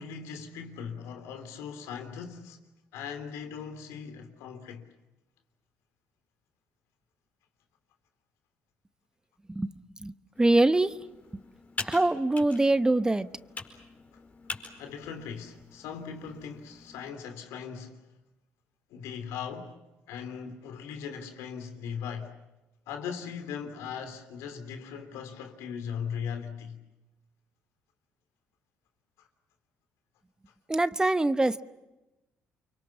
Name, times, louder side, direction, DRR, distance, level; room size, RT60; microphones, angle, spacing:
voice 1, 0.0-2.6 2.9-4.9 14.1-14.2 14.8-18.0 18.9-19.8 20.1-22.3 22.9-26.8 29.2-29.3, left 7 dB, 85° left, 3.2 m, -39 dB
voice 2, 10.0-11.0 11.8-13.3 30.7-31.6, right 2 dB, 15° right, 0.9 m, -24 dB
Computer keyboard, 10.3-17.1, left 3 dB, 30° left, 4.8 m, -44 dB
29.5 x 24.0 x 7.2 m
cardioid pair, 85°, 5 cm